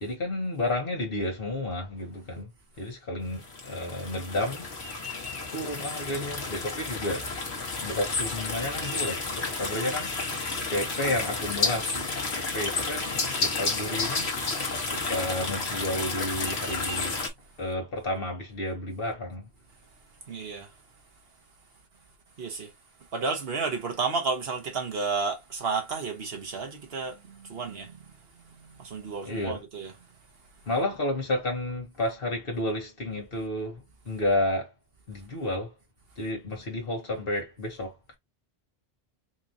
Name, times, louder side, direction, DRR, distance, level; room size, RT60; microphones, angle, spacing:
voice 1, 0.0-2.5 2.8-4.6 5.1-5.2 5.5-7.3 7.8-10.4 10.7-14.3 14.9-17.2 17.6-19.4 29.2-29.6 30.7-34.7 35.1-35.7 36.2-38.0, left 1 dB, 60° left, 1.7 m, -31 dB
sound 1, 3.4-17.3, left 3 dB, 80° left, 1.6 m, -31 dB
voice 2, 20.3-20.7 22.4-22.7 23.1-28.0 28.3-29.9, right 4 dB, 70° right, 1.4 m, -32 dB
4.5 x 3.0 x 2.6 m
omnidirectional pair, 1.1 m